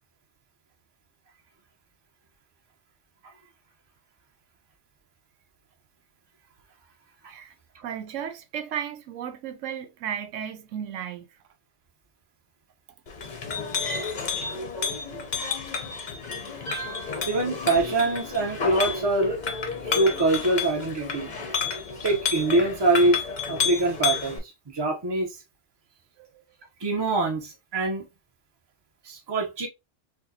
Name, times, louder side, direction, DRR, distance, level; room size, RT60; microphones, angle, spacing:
voice 1, 7.8-11.3 26.2-26.4, right 9 dB, 85° right, 1.0 m, -34 dB
Chink clink, 13.1-24.4, left 5 dB, 45° left, 0.7 m, -31 dB
voice 2, 17.3-19.4 19.8-21.3 22.0-25.4 26.8-28.1 29.0-29.7, right 2 dB, 25° right, 0.7 m, -24 dB
4.4 x 2.2 x 2.7 m
omnidirectional pair, 1.3 m